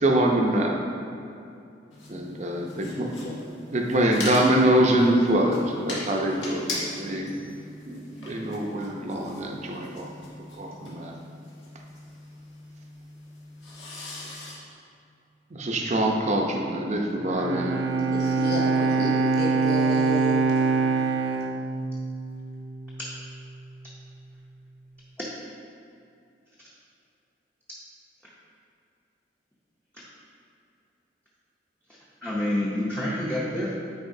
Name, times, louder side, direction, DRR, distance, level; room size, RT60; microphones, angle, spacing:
voice 1, 0.0-0.8 2.1-3.1 3.7-5.6 5.9-7.3 7.9-10.0 10.6-11.1 15.5-18.1, right 1 dB, 40° right, 1 dB, 0.6 m, -24 dB
sound 1, 1.9-14.6, left 2 dB, 90° left, 1.5 m, -40 dB
Bowed string instrument, 17.2-22.6, right 4 dB, 80° right, 0.3 m, -24 dB
voice 2, 18.1-20.4, equal, 55° left, -3 dB, 0.7 m, -31 dB
voice 3, 32.2-33.7, left 1 dB, 10° left, -7 dB, 0.7 m, -28 dB
9.5 x 4.3 x 2.7 m, 2.6 s
head